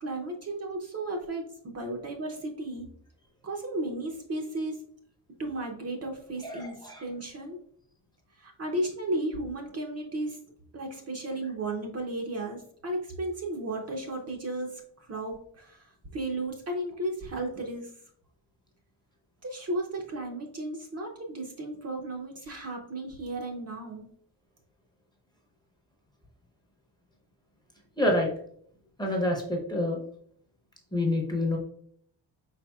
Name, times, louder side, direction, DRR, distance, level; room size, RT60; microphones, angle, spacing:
voice 1, 0.0-2.9 3.4-4.8 5.4-7.6 8.4-10.4 10.7-17.9 19.4-24.1, right 1 dB, 35° right, 1 dB, 0.6 m, -34 dB
voice 2, 6.4-7.0 28.0-28.3 29.0-30.0 30.9-31.6, left 1 dB, 10° left, -1 dB, 0.7 m, -27 dB
4.8 x 4.2 x 2.3 m, 0.63 s
wide cardioid pair, 170°, 43 cm